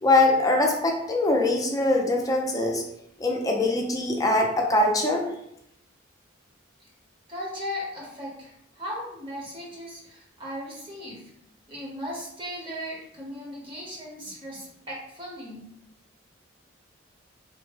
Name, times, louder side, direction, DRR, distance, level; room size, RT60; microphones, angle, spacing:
voice 1, 0.0-2.8 3.2-5.3, left 2 dB, 20° left, 1 dB, 0.5 m, -22 dB
voice 2, 7.3-11.2 11.7-15.6, equal, 25° right, -4 dB, 0.9 m, -37 dB
3.4 x 2.1 x 3.3 m, 0.77 s
head